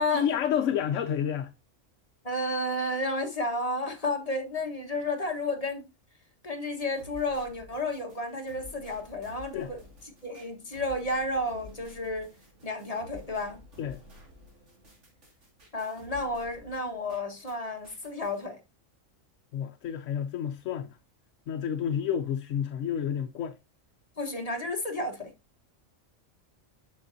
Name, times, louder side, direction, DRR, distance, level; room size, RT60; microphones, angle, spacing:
voice 1, 0.1-1.5 9.5-9.7 13.8-14.0 19.5-21.0 21.5-23.6, left 9 dB, 70° left, 1.0 m, -30 dB
voice 2, 2.2-5.8 6.4-9.8 10.2-12.3 12.6-13.6 15.7-18.6 24.2-25.3, left 2 dB, 30° left, 1.4 m, -31 dB
sound 1, 6.6-17.6 17.8-18.5, left 2 dB, 60° right, 2.7 m, -52 dB
8.5 x 6.5 x 2.6 m
omnidirectional pair, 1.4 m